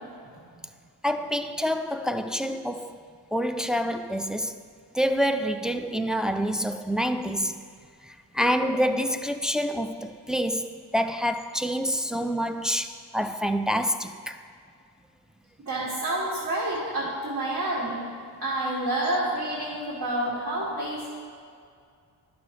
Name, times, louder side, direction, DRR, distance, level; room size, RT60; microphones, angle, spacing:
voice 1, 1.0-3.0 3.3-4.6 4.9-7.6 8.0-14.4, equal, ahead, 0.3 m, -27 dB
voice 2, 15.6-18.0 18.4-21.1, right 1 dB, 50° right, 2.2 m, -28 dB
11.0 x 6.1 x 3.1 m
supercardioid pair, 50°, 42 cm